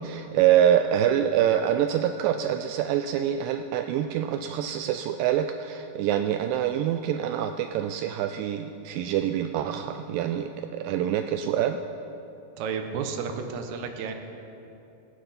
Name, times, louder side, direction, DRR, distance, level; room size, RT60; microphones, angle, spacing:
voice 1, 0.0-11.8, right 10 dB, 85° right, 7 dB, 2.0 m, -25 dB
voice 2, 12.6-14.1, right 6 dB, 70° right, 5 dB, 2.0 m, -32 dB
18.0 x 9.3 x 5.8 m, 2.9 s
omnidirectional pair, 4.4 m